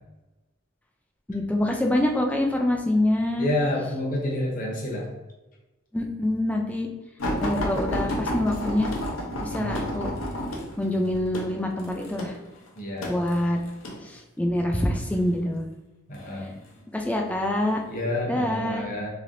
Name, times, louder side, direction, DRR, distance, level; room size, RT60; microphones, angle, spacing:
voice 1, 1.3-3.5 5.9-6.9 7.4-8.9 9.4-10.1 10.8-12.4 13.1-13.6 14.0-15.7 16.9-17.8 18.3-18.9, left 1 dB, 5° left, 1 dB, 0.3 m, -25 dB
voice 2, 3.4-5.1 9.5-9.8 12.8-13.2 16.1-16.6 17.9-19.1, left 1 dB, 45° left, -2 dB, 0.8 m, -29 dB
sound 1, 7.2-14.0 14.8-15.2 16.1-16.8 17.5-17.7 18.1-18.2, equal, 85° left, 0.7 m, -31 dB
3.3 x 2.8 x 2.6 m, 1.1 s
head